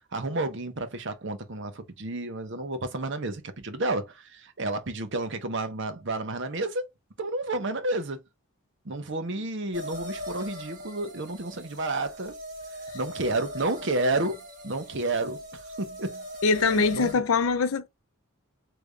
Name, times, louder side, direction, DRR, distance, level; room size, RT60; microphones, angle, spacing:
voice 1, 0.1-6.8 7.2-8.2 8.8-12.3 12.9-16.2 16.7-17.2, right 2 dB, 55° right, 0.8 m, -31 dB
sound 1, 9.7-17.1, left 1 dB, 40° right, 2.3 m, -40 dB
voice 2, 16.4-17.9, left 4 dB, 70° left, 0.5 m, -23 dB
3.4 x 3.3 x 2.3 m
head